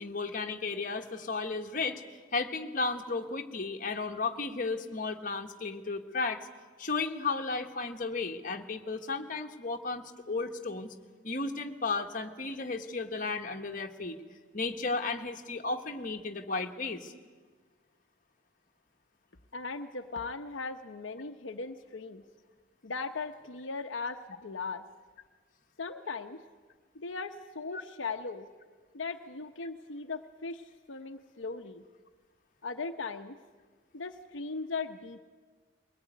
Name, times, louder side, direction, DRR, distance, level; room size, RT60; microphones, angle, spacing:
voice 1, 0.0-2.0 2.3-6.5 6.8-10.9 11.2-14.2 14.5-17.1, left 3 dB, 40° left, 4 dB, 1.4 m, -34 dB
voice 2, 19.5-22.2 22.8-24.8 25.8-26.4 26.9-28.5 28.9-31.8 32.6-33.4 33.9-35.2, left 4 dB, 75° left, 5 dB, 0.9 m, -38 dB
22.0 x 19.0 x 9.3 m, 1.5 s
head